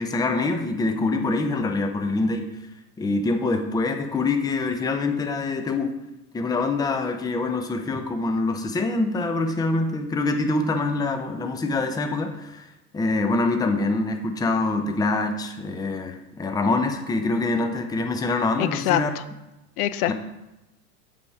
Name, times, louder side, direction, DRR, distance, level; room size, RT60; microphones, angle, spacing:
voice 1, 0.0-2.4 3.0-6.0 6.3-19.1 20.1-20.2, left 3 dB, 10° left, 6 dB, 0.5 m, -25 dB
voice 2, 18.6-19.2 19.8-20.1, left 13 dB, 70° left, 14 dB, 0.5 m, -24 dB
8.3 x 3.5 x 4.6 m, 0.97 s
hypercardioid pair, 90°, 46 cm